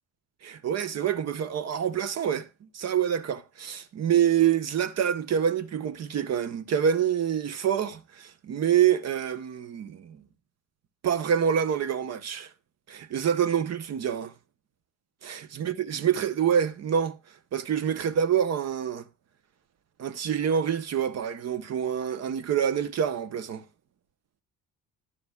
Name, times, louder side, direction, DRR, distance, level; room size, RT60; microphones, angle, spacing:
voice 1, 0.4-2.5 2.7-10.2 11.0-12.5 12.9-14.3 15.2-17.2 17.5-19.0 20.0-23.6, right 8 dB, 45° right, 1.0 m, -26 dB
12.5 x 10.0 x 2.3 m
cardioid pair, 100°, 35 cm